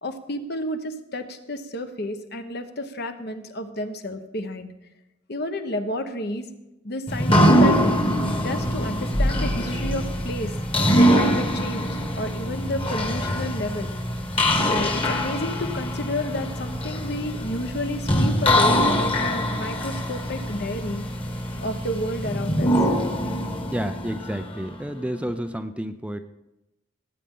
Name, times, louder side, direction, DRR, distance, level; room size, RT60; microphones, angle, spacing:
voice 1, 0.0-4.7 5.3-6.4 6.8-8.0 8.4-10.5 10.9-13.9 14.6-21.0 21.6-22.8, left 1 dB, 55° left, 7 dB, 1.1 m, -31 dB
sound 1, 7.1-24.9, equal, 30° left, 1.6 m, -23 dB
voice 2, 23.7-26.2, right 1 dB, 5° right, 8 dB, 0.4 m, -30 dB
19.0 x 8.8 x 3.8 m, 0.94 s
head